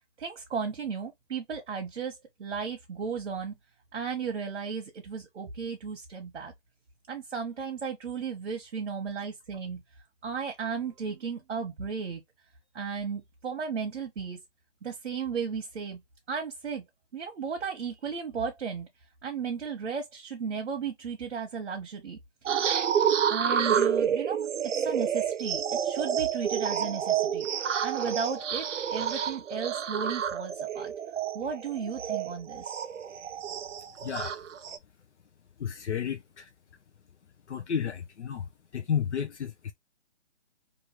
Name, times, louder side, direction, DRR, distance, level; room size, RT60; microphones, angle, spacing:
voice 1, 0.2-3.5 3.9-6.5 7.1-9.8 10.2-12.2 12.7-14.4 14.8-16.0 16.3-16.8 17.1-18.9 19.2-22.2 22.5-22.6 23.3-24.5 24.8-27.5 27.8-28.7 28.9-30.9 31.3-32.7, right 6 dB, 70° right, 1.0 m, -34 dB
sound 1, 22.5-34.8, right 8 dB, 85° right, 0.6 m, -29 dB
voice 2, 34.0-34.4 35.6-36.5 37.5-39.7, left 8 dB, 70° left, 0.6 m, -32 dB
3.0 x 2.6 x 2.9 m
hypercardioid pair, 175°, 35 cm